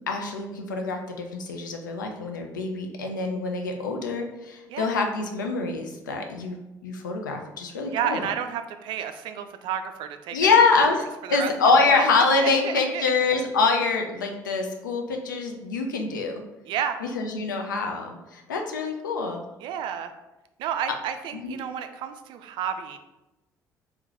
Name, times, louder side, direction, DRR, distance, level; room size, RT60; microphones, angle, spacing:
voice 1, 0.1-8.3 10.3-16.4 17.1-19.4 21.3-21.6, left 4 dB, 80° left, 3 dB, 0.4 m, -25 dB
voice 2, 7.9-10.5 11.2-12.1 12.4-13.1 16.7-17.0 19.6-20.1 20.6-23.0, right 9 dB, 50° right, 8 dB, 0.3 m, -31 dB
3.6 x 2.2 x 4.1 m, 1.0 s
figure-of-eight pair, 50°, 10 cm